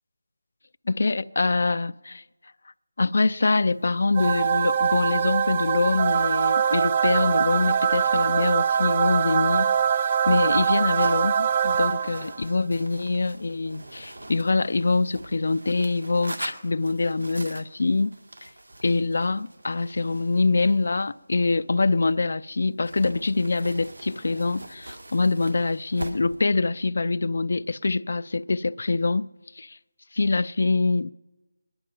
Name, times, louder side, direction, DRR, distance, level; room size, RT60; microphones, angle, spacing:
voice 1, 0.9-2.2 3.0-9.7 10.3-18.5 18.8-29.3 29.6-29.8 30.1-31.1, left 3 dB, 60° left, 0.5 m, -24 dB
sound 1, 4.1-12.4, right 8 dB, 30° right, 0.4 m, -23 dB
sound 2, 9.7-22.3 22.8-26.4, right 1 dB, 90° right, 2.0 m, -43 dB
21.0 x 11.0 x 5.9 m
figure-of-eight pair, 165°, 0 cm